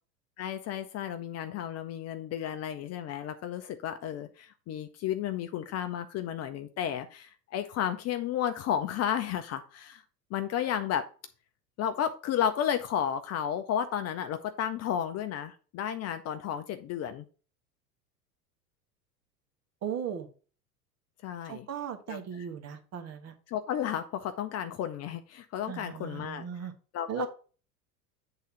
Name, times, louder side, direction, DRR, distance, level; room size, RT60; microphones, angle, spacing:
voice 1, 0.4-10.0 10.3-11.1 11.8-17.2 21.2-21.7 22.1-22.2 23.5-26.5 26.9-27.3, left 9 dB, 30° left, 8 dB, 0.7 m, -32 dB
voice 2, 19.8-20.3 21.4-23.3 25.7-26.7 27.1-27.3, right 8 dB, 30° right, 6 dB, 1.4 m, -37 dB
8.2 x 3.9 x 5.6 m, 0.38 s
hypercardioid pair, 85°, 48 cm